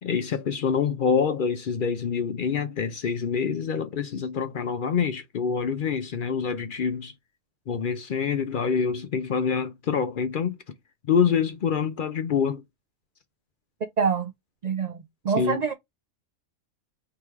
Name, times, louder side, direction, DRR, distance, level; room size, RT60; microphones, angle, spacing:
voice 1, 0.0-7.1 7.7-10.6 11.0-12.6 15.4-15.6, left 6 dB, 60° left, 0.6 m, -26 dB
voice 2, 14.0-14.3 14.6-15.7, right 6 dB, 80° right, 0.3 m, -26 dB
3.4 x 2.9 x 4.5 m
omnidirectional pair, 1.3 m